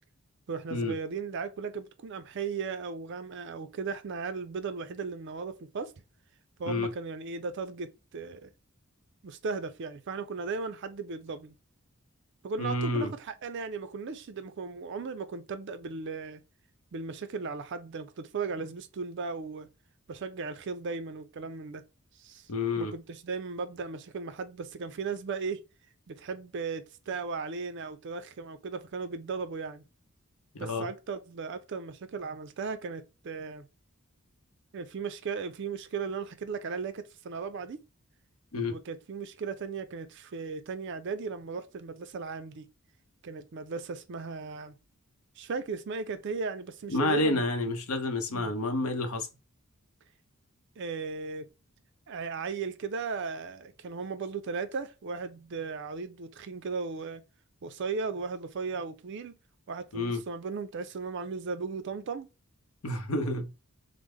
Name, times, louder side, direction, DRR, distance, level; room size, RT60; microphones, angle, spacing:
voice 1, 0.5-5.9 6.6-8.5 9.2-11.6 12.4-16.4 16.9-19.7 20.1-21.8 22.2-22.5 22.8-25.6 26.1-29.8 30.6-33.7 34.7-37.8 38.7-42.7 43.2-44.8 45.4-47.5 48.3-48.5 50.8-51.5 52.1-57.2 57.6-59.4 59.7-62.3, right 4 dB, 55° right, 0.4 m, -36 dB
voice 2, 12.6-13.1 22.5-22.9 30.5-30.9 38.5-38.8 46.9-49.3 59.9-60.2 62.8-63.5, left 2 dB, 75° left, 0.7 m, -29 dB
3.2 x 2.0 x 3.5 m
head